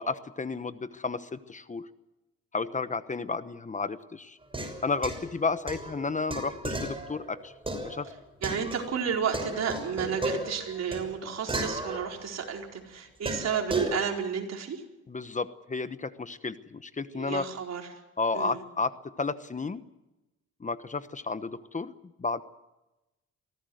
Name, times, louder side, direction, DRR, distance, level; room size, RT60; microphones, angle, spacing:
voice 1, 0.0-1.9 2.5-4.4 4.8-7.5 7.8-8.1 15.1-17.5 18.2-19.8 20.6-21.9 22.2-22.4, left 4 dB, 25° left, 12 dB, 1.1 m, -32 dB
sound 1, 4.4-9.0 9.3-12.6 13.2-14.0, right 1 dB, 15° right, 6.1 m, -35 dB
voice 2, 8.4-14.8 17.1-17.9 18.3-18.6, right 7 dB, 60° right, 1 dB, 4.7 m, -32 dB
24.0 x 17.0 x 7.9 m, 1.0 s
cardioid pair, 90°, 30 cm